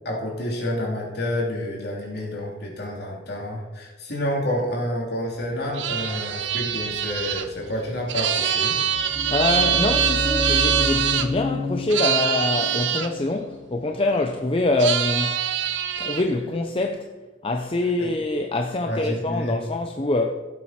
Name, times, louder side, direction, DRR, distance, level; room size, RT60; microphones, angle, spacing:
voice 1, 0.0-8.7 18.0-18.1 18.8-19.6, left 1 dB, 55° left, 3.2 m, -29 dB
sound 1, 5.7-11.3 11.9-13.1 14.8-16.2, right 9 dB, 75° right, 0.8 m, -24 dB
sound 2, 8.7-14.5, left 1 dB, 10° right, 3.1 m, -30 dB
voice 2, 9.1-15.4 16.0-17.1 17.4-20.3, left 2 dB, 30° left, 0.6 m, -25 dB
16.5 x 7.6 x 4.3 m
head